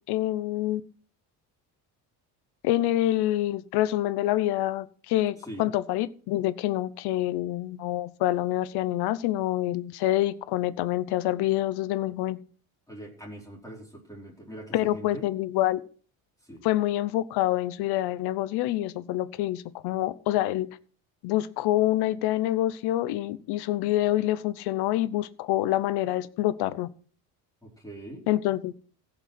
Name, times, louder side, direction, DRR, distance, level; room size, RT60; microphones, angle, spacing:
voice 1, 0.1-0.8 2.6-12.4 14.7-15.8 16.6-20.7 21.2-26.9 28.3-28.7, left 14 dB, 75° left, 17 dB, 0.9 m, -26 dB
voice 2, 12.9-15.3 16.4-16.6 27.6-28.2, right 1 dB, 10° left, -2 dB, 3.5 m, -42 dB
16.0 x 5.6 x 6.1 m, 0.42 s
cardioid pair, 110°, 39 cm